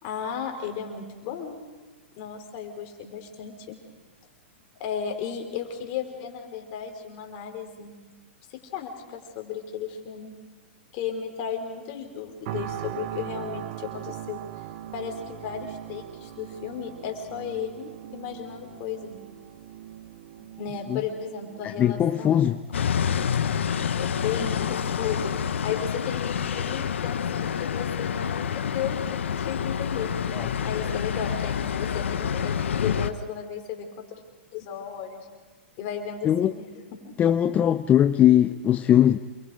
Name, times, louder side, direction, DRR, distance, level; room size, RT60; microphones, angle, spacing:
voice 1, 0.0-1.7 2.2-3.8 4.8-7.9 8.5-10.3 10.9-14.4 14.9-19.2 20.6-22.5 24.0-30.1 30.6-34.2 34.5-35.3 35.8-37.1 37.6-37.8, left 7 dB, 45° left, 4 dB, 4.6 m, -35 dB
sound 1, 12.5-27.5 28.0-28.1, right 12 dB, 50° right, 1.6 m, -41 dB
voice 2, 21.6-22.6 30.3-30.5 36.2-36.5 37.2-39.2, left 10 dB, 25° left, 10 dB, 0.6 m, -20 dB
sound 2, 22.7-33.1, left 7 dB, 80° left, 1.2 m, -28 dB
28.5 x 22.5 x 5.0 m, 1.4 s
hypercardioid pair, 130°, 6 cm